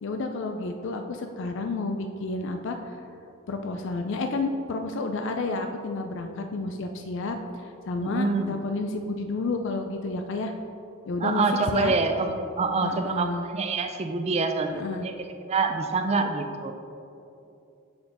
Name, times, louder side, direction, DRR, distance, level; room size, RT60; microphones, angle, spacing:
voice 1, 0.0-3.0 3.5-10.5 11.1-11.4 11.7-12.0 12.8-13.5 14.7-15.1, left 3 dB, 60° left, 5 dB, 0.4 m, -31 dB
voice 2, 8.0-8.6 11.2-15.1 15.5-16.7, right 3 dB, 30° right, 6 dB, 0.3 m, -26 dB
7.6 x 4.5 x 4.1 m, 2.7 s
head